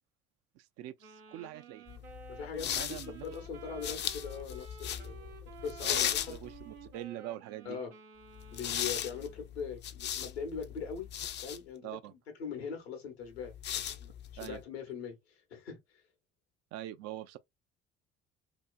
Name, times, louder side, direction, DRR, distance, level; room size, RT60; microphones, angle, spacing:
voice 1, 0.6-1.9 2.8-3.2 5.8-7.8 11.8-12.1 14.4-14.6 16.7-17.4, right 13 dB, 55° right, 0.4 m, -43 dB
Wind instrument woodwind instrument, 1.0-9.5, right 6 dB, 90° right, 0.8 m, -53 dB
sound 1, 1.9-6.9 8.4-11.6 13.4-14.6, left 10 dB, 35° left, 0.4 m, -38 dB
voice 2, 2.3-5.3 5.6-6.3 7.6-7.9 8.5-11.1 11.4-16.0, left 6 dB, 90° left, 0.9 m, -41 dB
2.8 x 2.4 x 2.2 m
hypercardioid pair, 60°, 30 cm